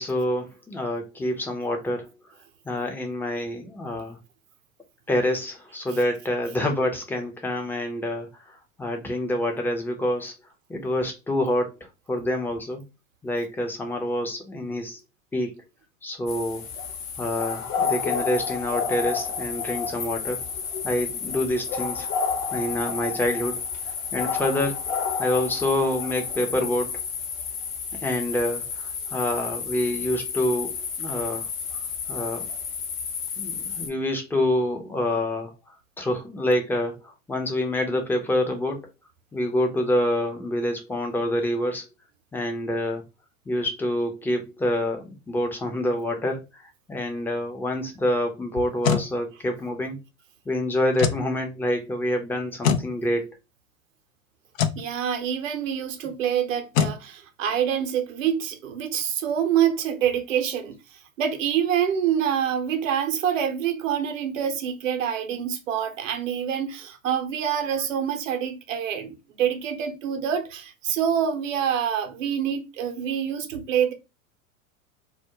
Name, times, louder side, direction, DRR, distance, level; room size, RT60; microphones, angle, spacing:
voice 1, 0.0-2.1 2.6-4.2 5.1-10.3 10.7-11.8 12.1-12.8 13.2-15.0 15.3-15.5 16.0-16.6 17.2-20.4 20.8-22.1 22.5-23.6 24.1-24.8 25.2-26.9 28.0-31.5 32.1-32.5 33.4-38.8 39.3-41.8 42.3-43.0 43.5-50.0 50.5-53.3, left 1 dB, 5° left, 0.5 m, -27 dB
sound 1, 16.3-33.9, left 6 dB, 40° left, 0.7 m, -31 dB
sound 2, 48.6-49.1 50.9-51.3 52.6-52.9 54.5-54.8 56.7-57.0, left 8 dB, 75° left, 0.5 m, -23 dB
voice 2, 54.8-60.8 61.2-73.9, right 9 dB, 70° right, 0.7 m, -26 dB
2.3 x 2.1 x 2.9 m
figure-of-eight pair, 90°, 41 cm